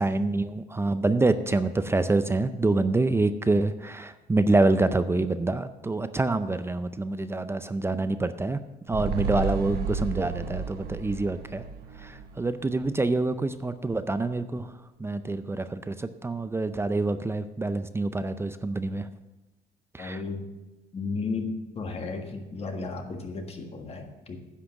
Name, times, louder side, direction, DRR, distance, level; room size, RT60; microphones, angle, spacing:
voice 1, 0.0-8.6 8.9-11.6 12.0-14.7 15.0-19.1 19.9-20.2, right 2 dB, 15° right, 12 dB, 0.5 m, -26 dB
sound 1, 8.9-13.4 13.7-13.8, right 5 dB, 65° right, 1.0 m, -33 dB
voice 2, 20.0-20.5 20.9-24.4, left 4 dB, 35° left, 4 dB, 1.6 m, -34 dB
10.0 x 6.0 x 7.2 m, 1.1 s
cardioid pair, 110°, 17 cm